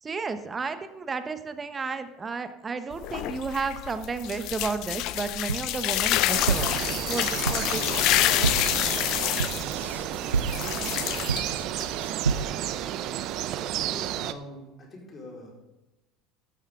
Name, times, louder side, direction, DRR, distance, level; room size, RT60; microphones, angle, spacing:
voice 1, 0.0-7.8 8.2-9.1, right 4 dB, 25° right, 10 dB, 1.1 m, -33 dB
sound 1, 2.9-12.1, left 15 dB, 55° left, 0.5 m, -28 dB
sound 2, 5.5-12.8, right 4 dB, 90° right, 0.4 m, -31 dB
sound 3, 6.3-14.3, right 12 dB, 55° right, 0.7 m, -32 dB
voice 2, 13.8-15.6, left 1 dB, 35° left, -2 dB, 4.4 m, -44 dB
12.5 x 10.5 x 3.7 m, 1.0 s
hypercardioid pair, 70°, 0 cm